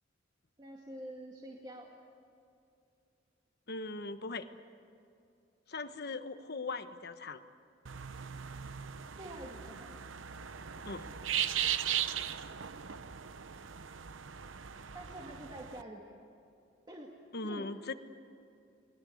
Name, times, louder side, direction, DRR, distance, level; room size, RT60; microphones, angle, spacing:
voice 1, 0.6-1.9 9.2-10.0 14.9-16.3 16.9-17.1 17.4-17.7, right 1 dB, 25° right, -1 dB, 2.2 m, -47 dB
voice 2, 3.7-4.5 5.7-7.4 10.8-11.1 17.3-17.9, left 3 dB, 55° left, 9 dB, 1.2 m, -39 dB
sound 1, 7.9-15.8, right 9 dB, 90° right, 0.8 m, -38 dB
29.5 x 21.0 x 7.9 m, 2.6 s
head